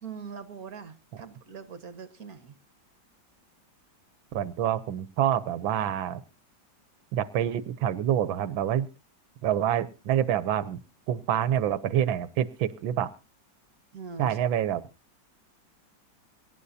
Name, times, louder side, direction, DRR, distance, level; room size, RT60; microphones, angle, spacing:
voice 1, 0.0-2.5 13.9-14.4, right 6 dB, 50° right, 10 dB, 1.8 m, -42 dB
voice 2, 4.3-6.2 7.1-8.9 9.4-10.8 11.1-13.1 14.2-14.8, right 10 dB, 90° right, 14 dB, 1.6 m, -27 dB
25.0 x 11.5 x 2.7 m, 0.30 s
omnidirectional pair, 2.1 m